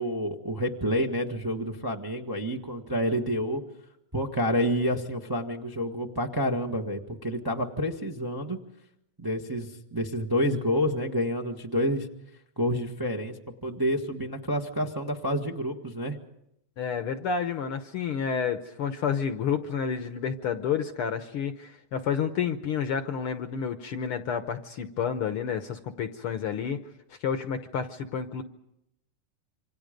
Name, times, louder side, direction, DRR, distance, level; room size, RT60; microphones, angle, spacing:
voice 1, 0.0-3.6 4.1-8.6 9.2-12.1 12.6-16.2, equal, 35° right, 1 dB, 0.3 m, -29 dB
voice 2, 16.8-26.8 27.1-28.4, left 7 dB, 65° left, 8 dB, 1.5 m, -30 dB
27.5 x 26.0 x 5.2 m, 0.82 s
omnidirectional pair, 3.4 m